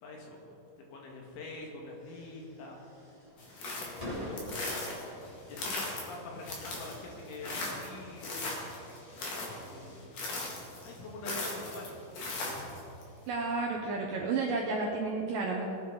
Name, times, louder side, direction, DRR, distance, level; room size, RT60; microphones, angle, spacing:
voice 1, 0.0-2.8 3.7-4.8 5.4-8.6 9.6-10.2 10.8-12.0, left 2 dB, 80° left, -1 dB, 4.3 m, -45 dB
sound 1, 1.6-8.6, left 1 dB, 10° left, 2.9 m, -47 dB
sound 2, 3.4-13.0, left 2 dB, 50° left, 3.1 m, -39 dB
voice 2, 13.3-15.7, right 3 dB, 80° right, -1 dB, 2.0 m, -31 dB
20.5 x 9.3 x 4.0 m, 2.7 s
omnidirectional pair, 5.4 m